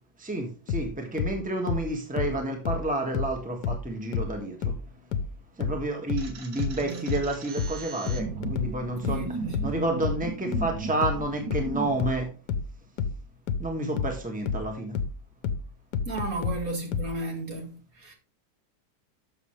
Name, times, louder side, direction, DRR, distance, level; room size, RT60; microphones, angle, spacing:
voice 1, 0.2-4.7 5.6-9.3 9.6-12.3 13.6-15.0, right 2 dB, 5° right, 1.6 m, -30 dB
sound 1, 0.7-3.9 4.1-17.2, left 5 dB, 80° left, 1.4 m, -30 dB
sound 2, 6.2-12.0, right 4 dB, 85° right, 2.1 m, -37 dB
voice 2, 6.7-7.1 9.1-10.1 16.1-18.1, right 1 dB, 55° right, 2.4 m, -34 dB
12.0 x 6.7 x 3.3 m
omnidirectional pair, 1.8 m